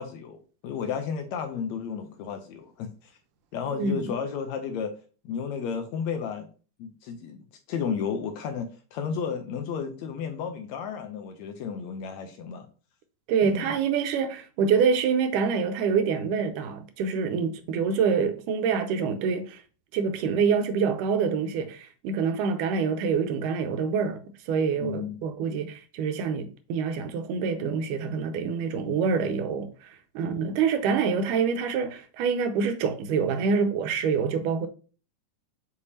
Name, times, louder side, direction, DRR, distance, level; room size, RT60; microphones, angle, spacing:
voice 1, 0.0-3.1 3.5-4.9 5.3-6.5 6.8-7.4 7.7-12.7 13.4-13.7 24.8-25.2, left 6 dB, 75° left, 1.7 m, -33 dB
voice 2, 3.8-4.2 13.3-19.6 19.9-24.2 24.5-34.7, right 6 dB, 90° right, 2.3 m, -26 dB
6.6 x 5.2 x 2.7 m
omnidirectional pair, 3.6 m